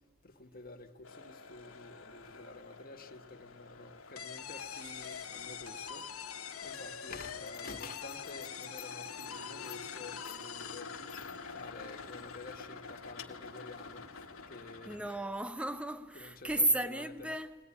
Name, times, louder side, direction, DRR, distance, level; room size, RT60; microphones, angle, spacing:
voice 1, 0.2-6.0 6.6-10.9 11.5-14.1 14.5-15.0 16.1-17.3, left 3 dB, 45° left, 1.7 m, -49 dB
sound 1, 1.0-15.4, left 4 dB, 70° left, 1.6 m, -49 dB
sound 2, 4.2-11.5, left 8 dB, 85° left, 1.1 m, -44 dB
sound 3, 4.5-11.7, right 4 dB, 70° right, 1.3 m, -62 dB
voice 2, 14.9-17.6, right 1 dB, 5° right, 0.8 m, -33 dB
23.0 x 19.5 x 10.0 m
head